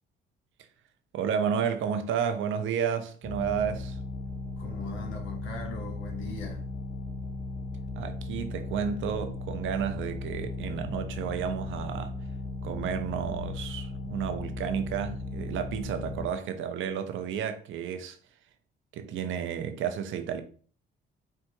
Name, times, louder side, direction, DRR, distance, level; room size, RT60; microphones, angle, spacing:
voice 1, 1.1-4.0 8.0-12.2 12.6-18.2 18.9-20.4, right 8 dB, 80° right, 0.7 m, -31 dB
sound 1, 3.2-16.3, left 2 dB, 35° left, 0.9 m, -37 dB
voice 2, 4.6-6.7, left 3 dB, 75° left, 1.4 m, -40 dB
4.7 x 2.5 x 4.5 m
cardioid pair, 90°, 20 cm